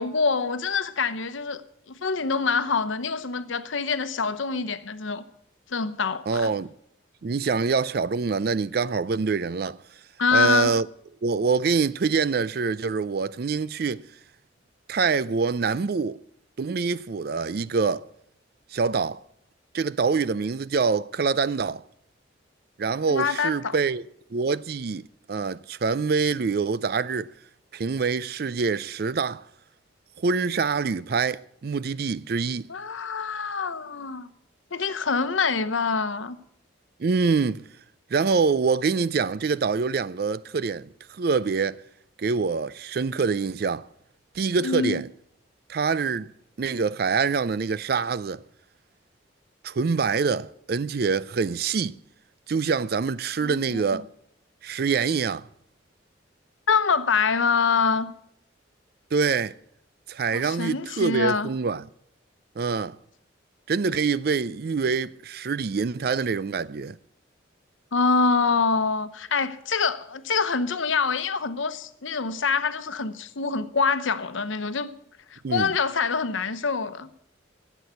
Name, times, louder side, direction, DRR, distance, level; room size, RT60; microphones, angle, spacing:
voice 1, 0.0-5.2 5.7-6.5 10.2-10.7 23.1-23.8 32.7-34.3 34.7-36.4 44.6-45.0 53.4-54.0 56.7-58.1 60.3-61.5 67.9-74.9 75.3-77.1, left 5 dB, 85° left, 0.9 m, -25 dB
voice 2, 6.3-6.7 7.2-9.8 10.3-10.9 11.2-14.0 14.9-16.2 16.6-18.0 18.7-19.2 19.7-21.8 22.8-24.0 24.3-27.3 27.7-29.4 30.2-32.7 37.0-37.6 38.1-41.8 42.2-43.9 44.3-45.1 45.7-46.3 46.6-48.4 49.6-52.0 52.5-54.0 54.6-55.5 59.1-59.5 60.1-61.9 62.6-63.0 63.7-67.0 75.4-75.7, right 5 dB, 50° right, 0.4 m, -25 dB
12.5 x 8.1 x 8.1 m
head